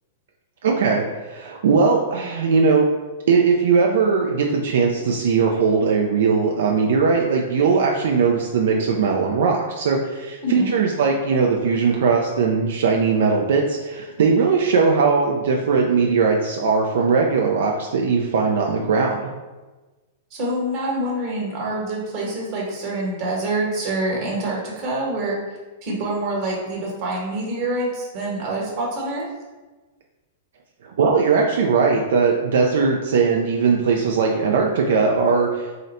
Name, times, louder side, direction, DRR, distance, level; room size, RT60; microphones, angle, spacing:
voice 1, 0.6-2.9 3.3-19.3 30.8-35.7, right 5 dB, 75° right, 0 dB, 0.4 m, -19 dB
voice 2, 20.3-25.4 25.8-29.3, right 1 dB, 40° right, -3 dB, 1.2 m, -26 dB
3.7 x 2.1 x 4.1 m, 1.2 s
hypercardioid pair, 135°, 0 cm